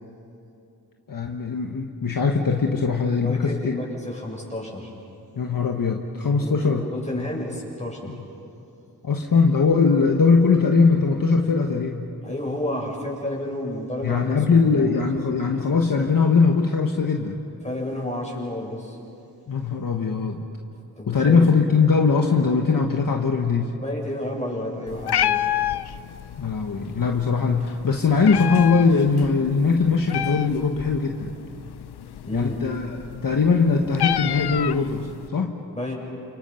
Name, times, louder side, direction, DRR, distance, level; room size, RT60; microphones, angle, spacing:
voice 1, 1.1-3.7 5.3-6.8 7.2-7.3 9.0-12.1 14.0-17.4 19.5-20.5 21.1-23.7 26.4-31.3 32.3-32.9 33.2-35.6, left 4 dB, 60° left, 2 dB, 1.6 m, -21 dB
voice 2, 3.1-4.9 6.4-8.1 12.2-14.9 17.6-19.0 21.0-21.5 23.8-25.4 32.2-32.6 35.7-35.9, left 1 dB, 15° left, -2 dB, 7.5 m, -31 dB
Meow, 24.9-35.3, left 11 dB, 80° left, 0.6 m, -30 dB
30.0 x 28.0 x 5.9 m, 2.8 s
wide cardioid pair, 85°, 39 cm